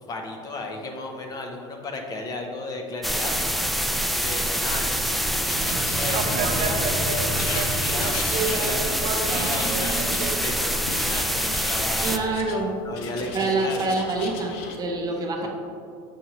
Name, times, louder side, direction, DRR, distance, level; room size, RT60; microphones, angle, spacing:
voice 1, 0.1-3.6 4.2-5.2 5.6-9.9 10.4-13.9, left 2 dB, 30° left, 3 dB, 0.7 m, -34 dB
sound 1, 3.0-12.2, equal, ahead, 0.3 m, -25 dB
Writing, 5.4-6.8 7.4-9.0 9.3-10.4 10.9-12.6 12.9-14.8, left 5 dB, 75° left, 0.8 m, -37 dB
sound 2, 5.4-10.3, right 3 dB, 70° right, 0.7 m, -30 dB
voice 2, 12.0-12.7 13.3-15.5, right 3 dB, 30° right, 1 dB, 0.8 m, -26 dB
7.3 x 5.3 x 3.0 m, 2.6 s
cardioid pair, 135°, 13 cm